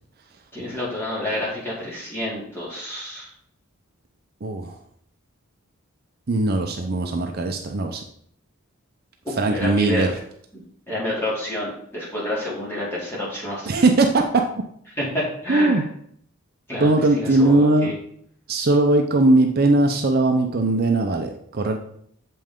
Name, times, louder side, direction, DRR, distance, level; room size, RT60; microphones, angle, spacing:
voice 1, 0.5-3.3 9.5-10.1 10.9-13.7 15.0-15.8 16.7-17.9, left 1 dB, 10° left, -7 dB, 2.6 m, -29 dB
voice 2, 4.4-4.7 6.3-8.0 9.4-10.1 13.7-14.2 15.5-15.8 16.8-17.9 18.5-21.8, right 2 dB, 45° right, 4 dB, 0.5 m, -19 dB
7.5 x 5.4 x 3.7 m, 0.66 s
head